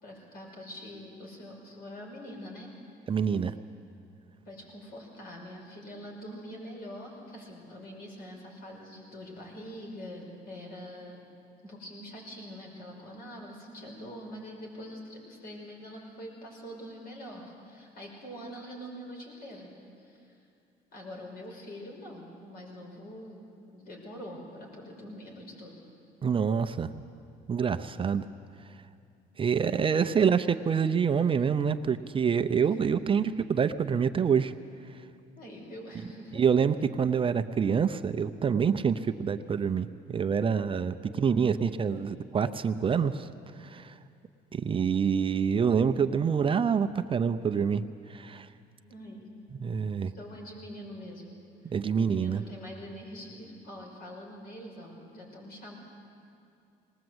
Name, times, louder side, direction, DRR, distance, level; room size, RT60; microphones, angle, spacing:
voice 1, 0.0-2.7 4.5-11.2 11.6-19.7 20.0-20.4 20.9-23.5 23.7-25.7 30.2-30.3 32.8-33.3 35.4-36.4 41.1-41.8 48.9-49.3 50.0-51.2 51.6-55.7, equal, 65° left, 0 dB, 5.7 m, -44 dB
voice 2, 3.1-3.5 26.2-26.9 27.5-28.2 29.4-34.5 36.3-43.3 43.6-43.9 44.5-47.8 48.1-48.5 49.6-50.1 51.6-52.4, right 6 dB, 30° right, 10 dB, 0.6 m, -26 dB
19.5 x 19.5 x 7.9 m, 2.5 s
cardioid pair, 110°, 17 cm